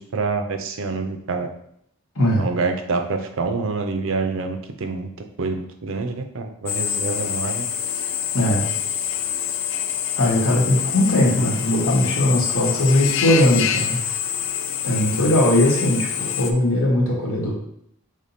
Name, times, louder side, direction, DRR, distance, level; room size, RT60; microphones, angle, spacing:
voice 1, 0.0-1.5 2.4-5.1 5.4-7.7, right 4 dB, 60° right, 6 dB, 0.5 m, -26 dB
voice 2, 2.1-2.5 8.3-8.7 10.2-14.0 14.8-17.5, left 1 dB, 90° left, -3 dB, 1.5 m, -19 dB
Drill, 6.7-16.5, left 9 dB, 55° left, 0.4 m, -26 dB
5.0 x 3.7 x 2.7 m, 0.72 s
head